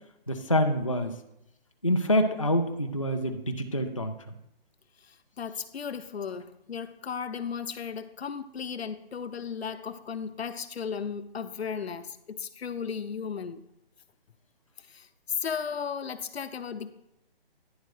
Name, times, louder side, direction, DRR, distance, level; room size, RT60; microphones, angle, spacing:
voice 1, 0.3-1.2 1.8-4.1, left 1 dB, 35° left, 0.4 m, -26 dB
voice 2, 5.4-13.6 14.9-17.0, left 6 dB, 90° left, 0.7 m, -35 dB
10.0 x 3.7 x 4.6 m
hypercardioid pair, 180°, 30 cm